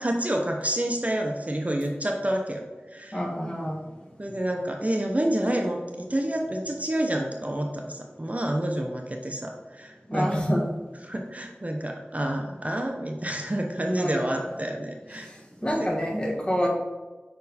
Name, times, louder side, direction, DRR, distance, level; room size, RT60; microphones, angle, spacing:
voice 1, 0.0-2.6 2.9-3.2 4.2-10.3 11.1-15.3, right 1 dB, 35° right, 2 dB, 0.7 m, -28 dB
voice 2, 3.1-3.8 10.1-10.6 14.0-14.6 15.1-15.4 15.6-16.7, equal, 20° left, -1 dB, 1.3 m, -27 dB
5.3 x 4.4 x 4.1 m, 1.3 s
wide cardioid pair, 45°, 4 cm